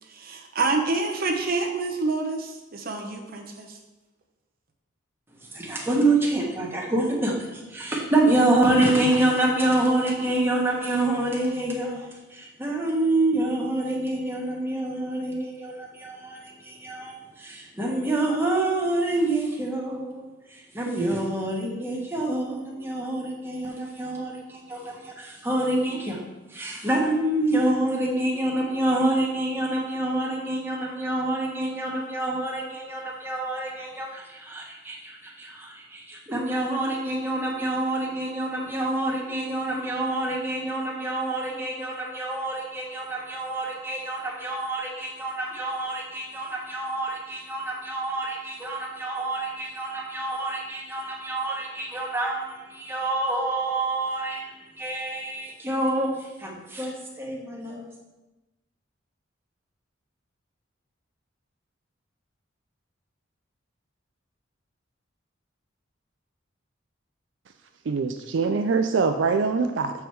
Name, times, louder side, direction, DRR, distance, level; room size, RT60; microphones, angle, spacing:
voice 1, 0.1-3.8, right 3 dB, 50° right, 0.8 m, -27 dB
voice 2, 5.4-26.2 26.5-57.8, right 2 dB, 10° right, 1.3 m, -27 dB
voice 3, 67.9-69.9, right 4 dB, 65° right, 0.4 m, -24 dB
7.2 x 4.7 x 4.6 m
head